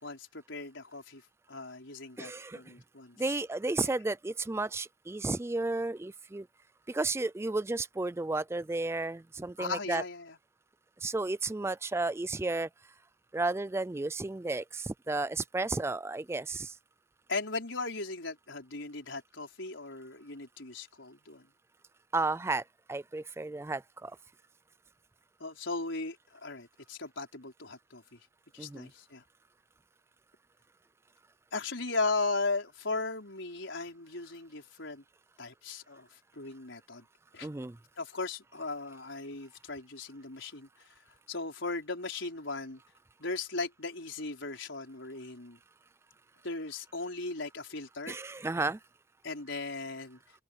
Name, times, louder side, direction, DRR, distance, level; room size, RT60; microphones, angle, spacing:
voice 1, 0.0-1.2 1.5-3.2 9.6-10.4 17.3-21.4 25.4-26.2 26.4-28.2 28.5-29.2 31.5-35.0 35.4-36.1 36.4-37.0 37.3-37.5 38.0-40.7 41.3-42.8 43.2-45.6 46.4-48.2 49.2-50.2, left 3 dB, 70° left, 5.0 m, -37 dB
voice 2, 2.2-2.6 3.2-6.5 6.9-10.0 11.0-12.7 13.3-16.7 22.1-22.6 22.9-24.1 28.6-28.9 37.4-37.8 48.1-48.8, right 3 dB, 15° right, 0.3 m, -33 dB
open air
head